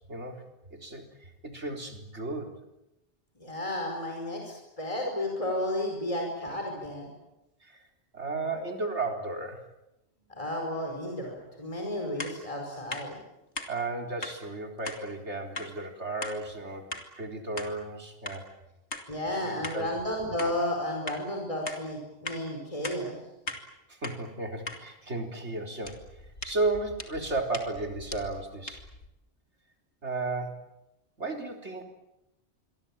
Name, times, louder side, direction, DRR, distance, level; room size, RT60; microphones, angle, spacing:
voice 1, 0.1-0.4 0.7-2.5 7.6-7.8 8.1-9.6 13.7-16.9 17.1-18.5 19.4-19.9 23.9-26.0 26.4-28.8 30.0-30.7 31.2-31.8, right 3 dB, 75° right, 3 dB, 4.4 m, -34 dB
voice 2, 3.4-7.1 10.3-13.2 19.1-23.2, left 1 dB, 30° left, 1 dB, 5.3 m, -32 dB
sound 1, 12.2-12.4 12.9-13.1 13.6-13.7 14.2-14.4 14.9-15.0 15.5-15.7 16.2-16.4 16.9-17.1 17.6-17.7 18.3-18.4 18.9-19.1 19.6-19.8 20.4-20.5 21.1-21.2 21.7-21.8 22.3-22.4 22.8-23.0 23.5-23.6 24.0-24.2 24.7-24.8 25.8-29.1, left 2 dB, 75° left, 3.1 m, -39 dB
27.0 x 23.0 x 8.9 m, 0.92 s
omnidirectional pair, 1.2 m